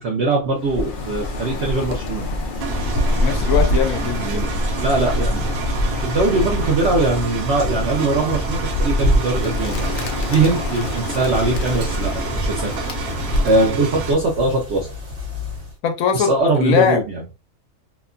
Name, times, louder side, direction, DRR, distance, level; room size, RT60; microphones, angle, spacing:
voice 1, 0.0-2.3 4.1-4.5 4.8-5.5 6.0-9.9 10.3-14.9 16.1-17.2, right 2 dB, 60° right, 0.9 m, -21 dB
Bird, 0.6-13.7, left 1 dB, 65° left, 0.5 m, -25 dB
sound 1, 0.7-15.8, left 1 dB, 40° right, 1.3 m, -31 dB
Engine, 2.6-14.1, right 4 dB, 85° right, 1.0 m, -29 dB
voice 2, 3.2-4.5 15.8-17.0, left 7 dB, 85° left, 1.0 m, -21 dB
2.8 x 2.2 x 2.4 m
omnidirectional pair, 1.4 m